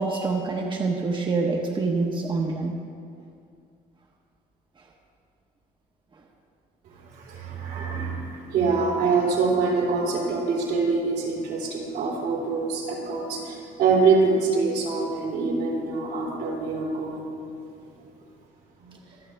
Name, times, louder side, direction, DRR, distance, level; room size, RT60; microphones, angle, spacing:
voice 1, 0.0-2.8, right 3 dB, 30° right, 0 dB, 1.2 m, -26 dB
voice 2, 7.1-17.3 18.8-18.9, right 4 dB, 80° right, -4 dB, 3.7 m, -25 dB
24.5 x 8.3 x 3.5 m, 2.3 s
cardioid pair, 110°, 17 cm